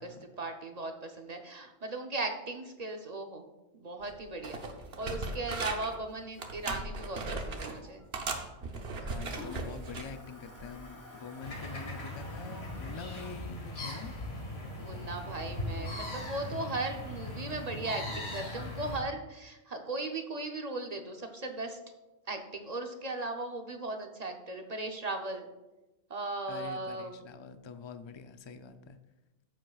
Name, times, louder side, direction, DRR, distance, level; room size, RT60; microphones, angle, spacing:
voice 1, 0.0-4.6 5.0-8.0 14.8-21.8 22.3-25.5 26.1-27.2, right 2 dB, 40° right, 4 dB, 0.8 m, -37 dB
sound 1, 4.0-4.2 4.4-6.0 6.4-7.8 8.1-10.1 10.6-10.8, right 3 dB, 65° right, 1.2 m, -38 dB
Toilet flush, 4.3-15.9, left 1 dB, 15° left, 1.3 m, -54 dB
voice 2, 9.0-14.1 26.5-29.0, left 5 dB, 40° left, 9 dB, 0.4 m, -45 dB
sound 2, 11.4-19.0, left 1 dB, 70° left, 1.9 m, -39 dB
14.0 x 7.5 x 2.4 m, 1.1 s
omnidirectional pair, 1.1 m